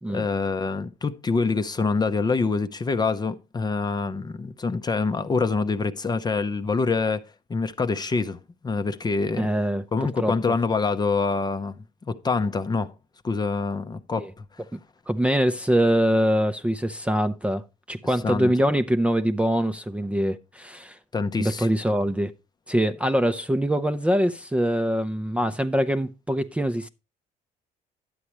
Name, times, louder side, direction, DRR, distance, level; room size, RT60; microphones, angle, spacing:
voice 1, 0.1-8.4 8.6-9.5 9.9-11.7 12.1-12.9 13.2-14.4 18.2-18.5 21.1-21.7, left 4 dB, 25° left, 0.7 m, -25 dB
voice 2, 9.4-10.3 14.2-14.3 14.7-14.8 15.1-17.6 17.9-21.0 21.4-22.3 22.7-26.9, equal, 5° right, 0.6 m, -23 dB
11.5 x 8.5 x 3.0 m
cardioid pair, 110°, 17 cm